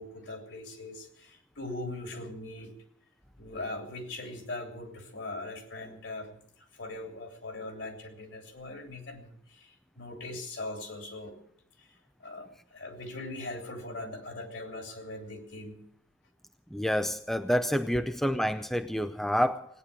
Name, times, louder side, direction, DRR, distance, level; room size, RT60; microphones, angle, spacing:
voice 1, 0.0-2.7 3.4-11.3 11.8-15.8, left 2 dB, 65° left, 3.2 m, -41 dB
voice 2, 16.7-19.7, equal, ahead, 0.5 m, -28 dB
18.0 x 9.6 x 8.4 m
head